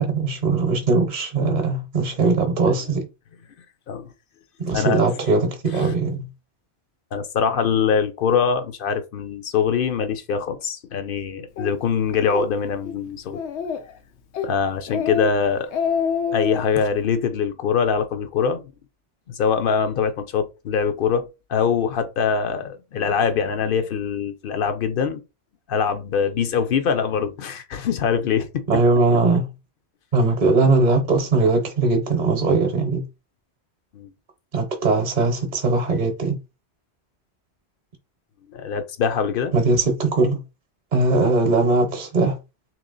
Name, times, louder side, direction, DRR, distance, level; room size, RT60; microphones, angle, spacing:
voice 1, 0.0-3.1 4.6-6.3 28.7-29.5 30.1-33.1 34.5-36.4 39.5-40.4 40.9-42.4, right 3 dB, 45° right, 0.8 m, -20 dB
voice 2, 4.6-5.0 5.7-5.9 7.1-13.4 14.4-15.7 16.3-18.6 19.3-25.2 25.7-28.6 33.9-34.1 38.5-39.5, left 6 dB, 60° left, 0.7 m, -23 dB
Speech, 11.6-11.7 12.2-12.5 12.9-13.0 13.3-13.9 14.3-14.5 14.9-15.3 15.6-16.6, left 6 dB, 90° left, 0.9 m, -26 dB
3.0 x 2.9 x 3.8 m
omnidirectional pair, 1.1 m